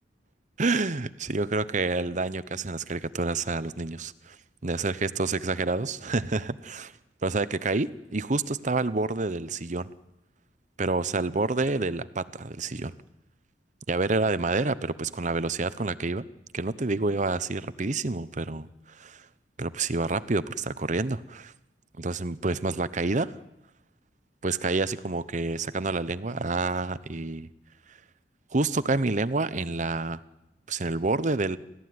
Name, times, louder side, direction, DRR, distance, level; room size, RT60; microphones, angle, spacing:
voice 1, 0.6-4.4 4.6-6.9 7.2-9.9 10.8-12.9 13.9-16.2 16.5-18.7 19.0-19.3 19.6-21.5 22.0-23.3 24.4-27.5 28.5-30.2 30.7-31.6, right 3 dB, 45° right, 15 dB, 0.9 m, -28 dB
29.5 x 14.0 x 9.6 m, 0.92 s
head